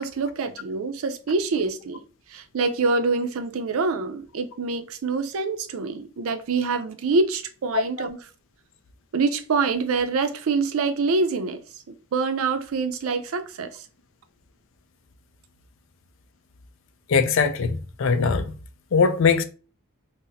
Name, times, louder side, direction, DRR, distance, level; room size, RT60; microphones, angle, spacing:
voice 1, 0.0-2.0 2.3-8.2 9.1-11.6 11.9-13.8, right 4 dB, 75° right, 0.4 m, -25 dB
voice 2, 17.1-18.5 18.9-19.4, left 5 dB, 60° left, 0.4 m, -21 dB
3.9 x 2.0 x 2.6 m
head